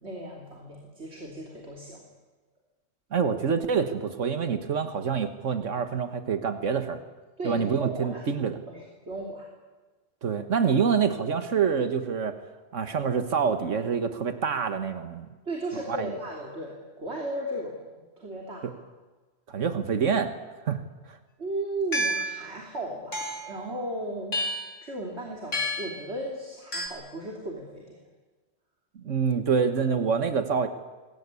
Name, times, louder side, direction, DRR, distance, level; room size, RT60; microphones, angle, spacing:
voice 1, 0.0-2.1 7.4-8.4 8.7-9.5 15.5-18.7 21.4-24.5 24.8-28.0, right 1 dB, 60° right, 0 dB, 3.5 m, -36 dB
voice 2, 3.1-7.0 7.4-8.6 10.2-12.4 12.7-15.3 15.9-16.1 19.5-20.4 20.7-20.8 21.1-21.2 29.0-30.7, right 6 dB, 80° right, 8 dB, 1.7 m, -26 dB
sound 1, 21.9-22.4 23.1-23.6 24.3-24.8 25.5-26.0 26.7-26.9, equal, 75° left, 3.6 m, -29 dB
26.0 x 22.0 x 8.4 m, 1.3 s
omnidirectional pair, 1.3 m